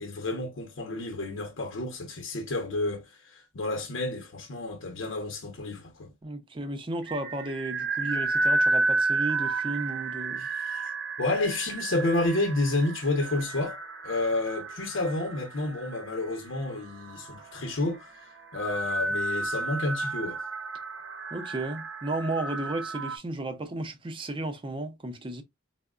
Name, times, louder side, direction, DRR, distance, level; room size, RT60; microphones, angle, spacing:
voice 1, 0.0-6.1 10.4-10.9 11.2-13.8 14.0-20.4, left 2 dB, 80° left, 0.8 m, -30 dB
voice 2, 6.2-10.5 21.3-25.4, right 2 dB, 25° right, 0.5 m, -34 dB
sound 1, 7.0-23.2, right 3 dB, 70° right, 0.7 m, -32 dB
4.4 x 2.0 x 2.3 m
head